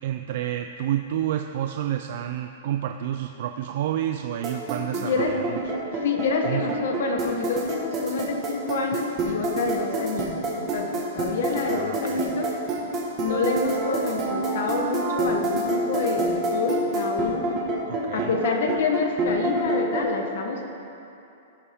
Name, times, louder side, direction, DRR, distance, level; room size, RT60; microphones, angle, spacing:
voice 1, 0.0-5.6 6.5-6.6 11.7-12.2 17.9-18.3, right 11 dB, 45° right, 6 dB, 0.3 m, -29 dB
sound 1, 4.4-20.0, right 2 dB, 20° right, 1.3 m, -27 dB
voice 2, 4.9-5.4 5.9-12.5 13.2-17.5 18.1-20.7, left 4 dB, 55° left, 3 dB, 1.0 m, -27 dB
16.5 x 6.9 x 3.5 m, 2.8 s
supercardioid pair, 180°, 0 cm